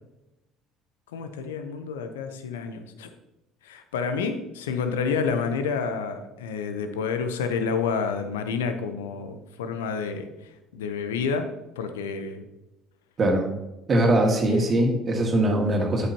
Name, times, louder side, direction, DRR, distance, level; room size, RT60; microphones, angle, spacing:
voice 1, 1.1-3.1 3.6-10.3 10.7-11.5 11.8-12.4 14.5-14.7, left 5 dB, 85° left, 8 dB, 0.8 m, -29 dB
voice 2, 13.2-13.5 13.9-16.1, right 1 dB, 40° right, 1 dB, 2.0 m, -21 dB
8.4 x 8.2 x 2.9 m, 0.97 s
hypercardioid pair, 65°, 0 cm